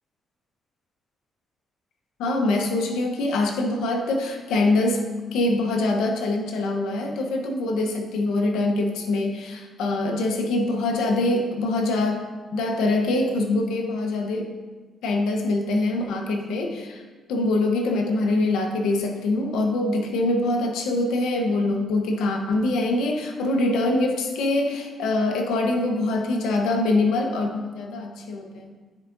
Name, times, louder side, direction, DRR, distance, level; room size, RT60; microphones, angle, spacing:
voice 1, 2.2-5.0 5.3-12.2 12.5-14.5 15.0-17.0 17.3-28.7, left 2 dB, 90° left, 3 dB, 0.9 m, -24 dB
13.0 x 4.7 x 2.6 m, 1.3 s
cardioid pair, 95°, 0 cm